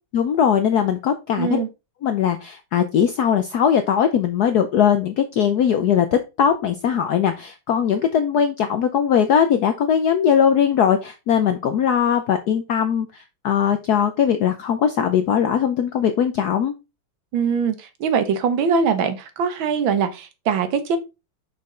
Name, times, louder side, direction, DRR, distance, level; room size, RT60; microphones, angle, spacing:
voice 1, 0.1-1.6 2.0-16.7, left 8 dB, 70° left, 1.0 m, -20 dB
voice 2, 1.4-1.7 17.3-21.0, right 6 dB, 70° right, 1.7 m, -22 dB
6.0 x 5.3 x 3.7 m
omnidirectional pair, 2.2 m